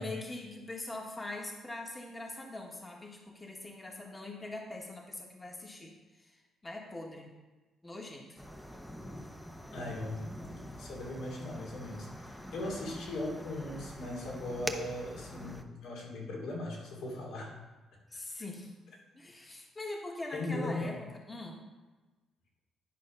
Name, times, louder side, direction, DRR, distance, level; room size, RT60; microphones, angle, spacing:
voice 1, 0.0-7.3 7.8-8.4 18.1-18.7 19.1-21.0 21.3-21.6, left 2 dB, 20° left, 1 dB, 1.4 m, -42 dB
sound 1, 8.4-15.6, equal, 5° left, 0.9 m, -44 dB
voice 2, 9.7-10.5 10.8-17.5 20.3-20.9, left 2 dB, 80° left, -3 dB, 2.7 m, -39 dB
10.5 x 4.9 x 5.4 m, 1.2 s
cardioid pair, 80°, 0 cm